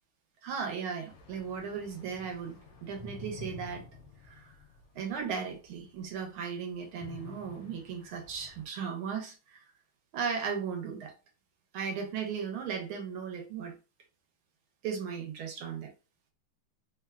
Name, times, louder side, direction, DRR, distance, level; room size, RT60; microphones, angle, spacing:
voice 1, 0.4-3.8 4.2-4.5 4.9-9.6 10.1-11.1 11.7-13.7 14.8-15.9, right 6 dB, 80° right, 1.5 m, -36 dB
sound 1, 1.1-5.4 5.8-5.9 7.0-8.6, left 3 dB, 70° left, 0.9 m, -49 dB
3.6 x 2.2 x 2.2 m
omnidirectional pair, 2.4 m